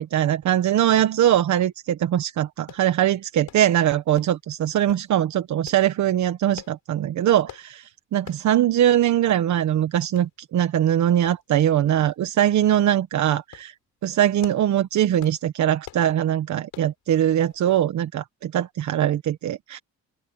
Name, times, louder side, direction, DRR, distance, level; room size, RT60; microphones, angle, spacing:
voice 1, 0.0-13.7 14.0-19.8, right 11 dB, 70° right, 1.3 m, -21 dB
sound 1, 2.7-2.9 3.5-3.7 4.2-4.4 4.9-5.1 5.7-5.9 6.6-6.8 7.5-7.7 8.3-8.5 8.8-8.9 9.3-9.4 10.2-10.3 11.3-11.6 12.0-12.1 12.7-12.9 13.4-13.7 14.2-14.7 15.2-15.4 15.8-16.1 16.7-16.9 17.4-17.6 17.9-18.0, left 12 dB, 80° left, 5.9 m, -44 dB
cardioid pair, 90°, 30 cm